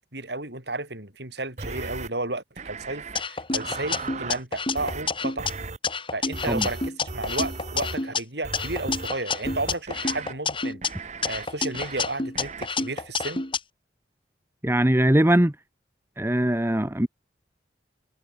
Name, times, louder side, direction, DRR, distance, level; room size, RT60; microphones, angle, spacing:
voice 1, 0.1-5.5 6.1-13.4, right 2 dB, 65° right, 6.8 m, -33 dB
sound 1, 1.6-2.1 2.6-3.2 3.5-4.4 4.8-5.1 5.4-5.8 6.3-8.0 8.4-9.1 9.4-10.3 10.8-11.5 11.7-12.0 12.4-12.7, right 3 dB, 40° right, 1.5 m, -37 dB
sound 2, 3.2-5.5 5.8-8.2 8.5-10.9 11.2-13.6, left 4 dB, 30° left, 3.9 m, -29 dB
voice 2, 14.6-15.5 16.2-17.1, right 1 dB, 15° right, 1.1 m, -21 dB
head